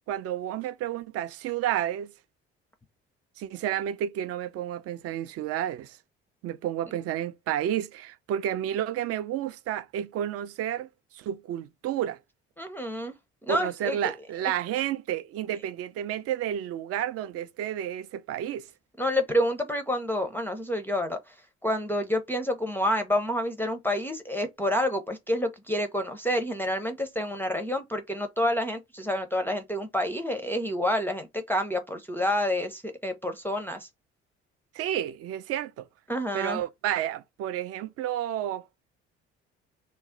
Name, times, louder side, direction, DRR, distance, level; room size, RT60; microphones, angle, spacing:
voice 1, 0.1-2.1 3.4-6.0 6.4-10.9 11.1-12.2 13.5-18.6 34.7-35.9 36.3-38.7, right 11 dB, 50° right, 0.4 m, -31 dB
voice 2, 12.6-13.2 13.4-14.1 19.0-21.4 21.6-33.9 36.1-36.6, left 1 dB, 5° left, 0.5 m, -28 dB
2.3 x 2.1 x 3.7 m
hypercardioid pair, 50°, 32 cm